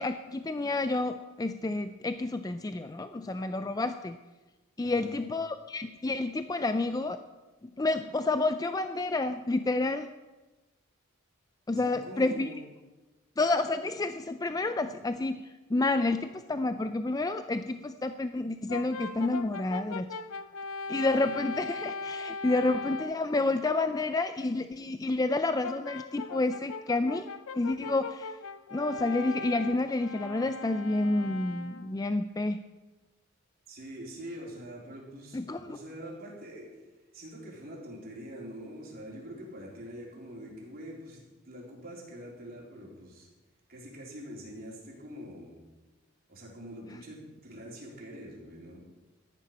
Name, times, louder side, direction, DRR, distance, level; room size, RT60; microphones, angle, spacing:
voice 1, 0.0-4.2 4.8-7.2 7.6-10.1 11.7-12.5 13.4-20.1 20.9-28.3 28.7-32.6 35.3-35.8, left 2 dB, 15° left, 10 dB, 0.3 m, -29 dB
voice 2, 4.8-5.2 11.7-12.6 33.7-35.4 35.7-36.7 37.1-43.3 43.7-45.6 46.3-48.9, equal, 45° right, -3 dB, 3.6 m, -44 dB
Brass instrument, 18.7-23.3 25.6-32.0, left 4 dB, 75° left, 0.6 m, -39 dB
14.0 x 10.5 x 5.4 m, 1.2 s
head